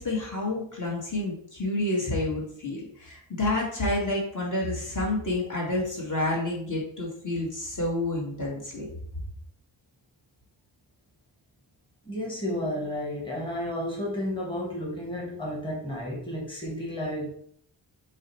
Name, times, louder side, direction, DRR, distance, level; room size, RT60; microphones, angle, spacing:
voice 1, 0.0-8.9, left 2 dB, 45° left, -3 dB, 1.3 m, -29 dB
voice 2, 12.0-17.3, left 1 dB, 10° left, -3 dB, 1.2 m, -32 dB
4.8 x 2.2 x 4.0 m, 0.62 s
wide cardioid pair, 95°, 44 cm